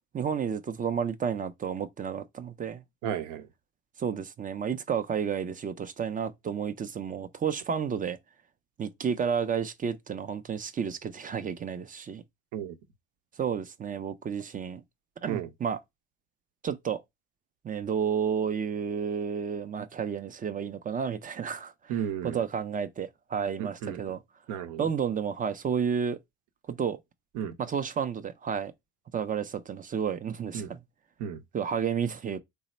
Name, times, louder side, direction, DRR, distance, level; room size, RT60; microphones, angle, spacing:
voice 1, 0.1-2.8 4.0-8.2 8.8-12.2 13.4-14.8 15.2-15.8 16.6-17.0 17.6-21.7 22.2-24.2 24.8-26.2 26.7-27.0 27.6-28.7 29.1-30.8 31.5-32.4, right 7 dB, 30° right, 0.4 m, -31 dB
voice 2, 3.0-3.5 12.5-12.8 15.3-15.5 21.9-22.4 23.6-24.1 24.5-24.9 27.3-27.6 30.5-30.7 31.2-31.4, right 9 dB, 75° right, 0.6 m, -34 dB
3.2 x 2.0 x 4.0 m
supercardioid pair, 80°, 31 cm